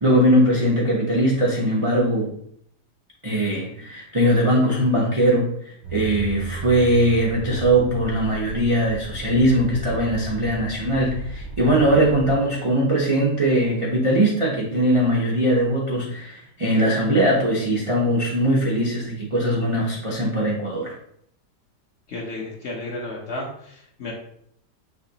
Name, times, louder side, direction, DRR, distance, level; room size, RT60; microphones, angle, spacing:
voice 1, 0.0-2.3 3.2-20.9, right 1 dB, 50° right, -5 dB, 0.3 m, -20 dB
sound 1, 5.8-12.3, right 3 dB, 85° right, 1.6 m, -34 dB
voice 2, 22.1-24.1, left 2 dB, 55° left, -2 dB, 0.8 m, -33 dB
5.8 x 2.8 x 2.8 m, 0.69 s
omnidirectional pair, 1.8 m